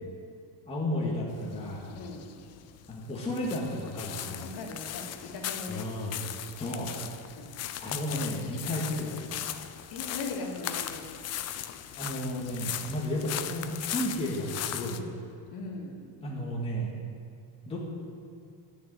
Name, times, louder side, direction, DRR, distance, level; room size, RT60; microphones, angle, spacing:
voice 1, 0.7-1.9 2.9-4.4 5.7-6.2 6.6-6.9 7.8-9.6 12.0-15.0 16.2-16.9 17.7-17.8, left 1 dB, 15° left, -5 dB, 1.9 m, -33 dB
sound 1, 1.3-15.0, left 11 dB, 40° left, 0.6 m, -38 dB
voice 2, 1.9-2.4 4.4-5.9 7.4-7.7 9.9-11.1 14.9-15.1 15.5-16.1, left 3 dB, 65° left, 0 dB, 2.5 m, -39 dB
13.0 x 6.8 x 9.4 m, 2.4 s
cardioid pair, 175°, 40 cm